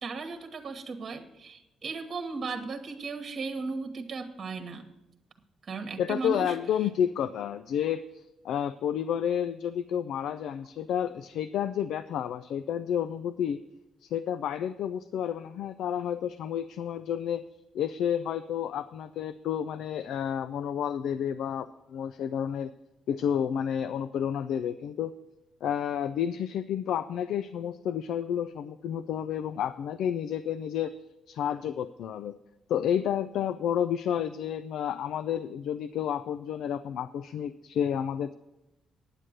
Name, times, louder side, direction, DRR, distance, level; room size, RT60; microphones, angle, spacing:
voice 1, 0.0-4.9 5.6-6.6, right 4 dB, 50° right, 6 dB, 1.2 m, -36 dB
voice 2, 6.0-13.6 14.0-17.4 17.7-22.7 23.1-25.1 25.6-30.9 31.3-32.4 32.7-38.3, left 9 dB, 75° left, 12 dB, 0.4 m, -30 dB
9.8 x 7.5 x 6.5 m, 0.93 s
cardioid pair, 90°, 0 cm